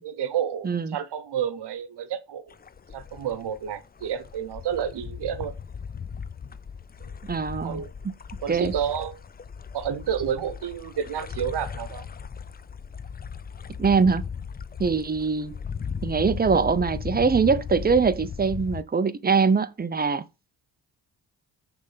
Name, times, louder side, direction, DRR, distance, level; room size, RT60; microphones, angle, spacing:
voice 1, 0.0-2.5 2.9-5.5 7.0-7.1 7.6-7.9 8.4-9.2 9.7-12.1, right 9 dB, 70° right, 1.0 m, -30 dB
voice 2, 0.6-1.0 7.3-8.1 8.5-8.7 13.8-14.2 14.8-15.5 16.0-20.3, right 5 dB, 20° right, 0.7 m, -23 dB
sound 1, 2.5-18.8, left 6 dB, 25° left, 0.4 m, -37 dB
6.3 x 3.6 x 5.7 m
cardioid pair, 65°, 41 cm